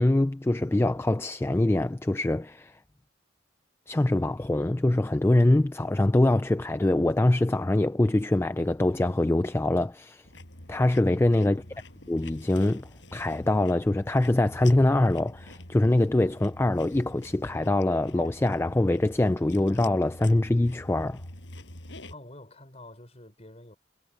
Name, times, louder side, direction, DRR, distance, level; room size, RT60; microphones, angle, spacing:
voice 1, 0.0-2.8 3.9-10.3 10.7-11.6 12.1-21.2, left 1 dB, 10° left, 0.3 m, -24 dB
sound 1, 10.2-22.2, left 1 dB, 65° left, 6.3 m, -46 dB
voice 2, 11.4-11.9 22.1-23.7, left 1 dB, 35° left, 5.7 m, -48 dB
head